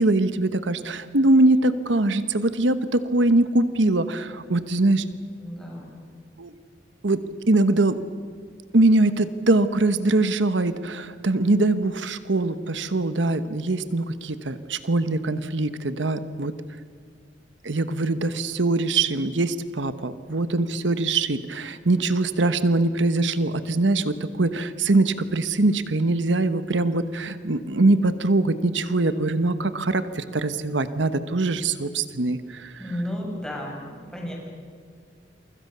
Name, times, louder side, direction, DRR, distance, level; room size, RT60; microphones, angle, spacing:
voice 1, 0.0-5.1 6.4-6.5 7.0-8.0 8.7-16.5 17.6-33.0, right 2 dB, 80° right, 12 dB, 1.1 m, -22 dB
voice 2, 5.4-6.0 32.8-33.8 34.1-34.3, equal, 5° left, -2 dB, 7.3 m, -32 dB
29.0 x 25.0 x 6.8 m, 2.1 s
head